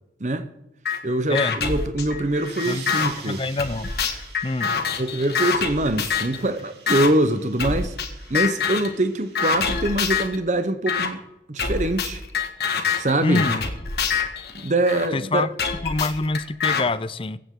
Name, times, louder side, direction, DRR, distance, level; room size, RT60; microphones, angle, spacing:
sound 1, 0.8-1.0 1.3-3.1 3.6-6.4 6.9-7.1 7.6-8.1 8.3-8.9 9.3-10.4 10.9-11.1 11.6-15.1 15.6-16.8, left 6 dB, 65° left, 1.7 m, -25 dB
voice 1, 1.0-3.4 5.0-7.9 8.3-11.2 11.5-12.2 12.9-13.4 14.5-15.5, right 1 dB, 40° right, 0.8 m, -23 dB
sound 2, 2.1-9.5, right 5 dB, 80° right, 3.6 m, -45 dB
voice 2, 3.2-3.9 4.4-4.8 13.2-13.7 15.1-15.5 15.8-17.4, left 3 dB, 30° left, 0.5 m, -25 dB
23.0 x 8.7 x 3.8 m
head